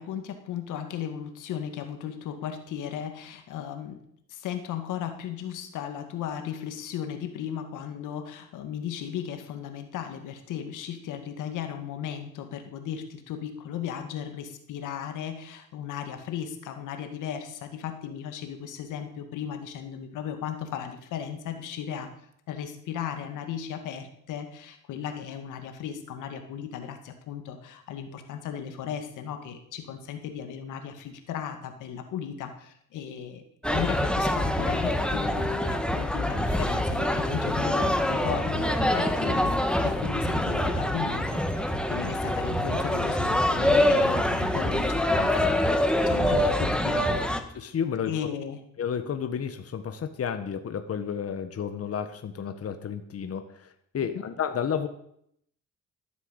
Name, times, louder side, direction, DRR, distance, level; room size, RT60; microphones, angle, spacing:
voice 1, 0.0-4.0 4.3-22.1 22.5-33.4 33.7-45.8 46.1-47.3 48.1-48.6, left 8 dB, 90° left, 6 dB, 2.2 m, -36 dB
sound 1, 33.6-47.4, left 1 dB, 5° left, 1.7 m, -25 dB
voice 2, 47.5-48.1 48.8-54.9, left 7 dB, 50° left, 7 dB, 1.6 m, -31 dB
14.0 x 9.6 x 8.2 m, 0.70 s
cardioid pair, 90°, 30 cm